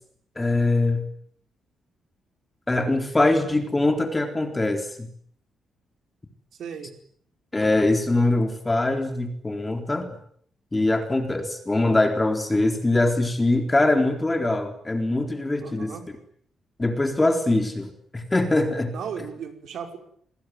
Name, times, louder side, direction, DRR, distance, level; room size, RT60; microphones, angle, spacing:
voice 1, 0.4-1.0 2.7-5.1 7.5-10.1 10.7-15.9 16.8-18.9, left 2 dB, 15° left, 6 dB, 3.8 m, -23 dB
voice 2, 6.6-6.9 15.6-16.0 18.9-20.0, right 7 dB, 65° right, 6 dB, 5.5 m, -36 dB
28.5 x 20.5 x 9.5 m, 0.65 s
cardioid pair, 155°, 0 cm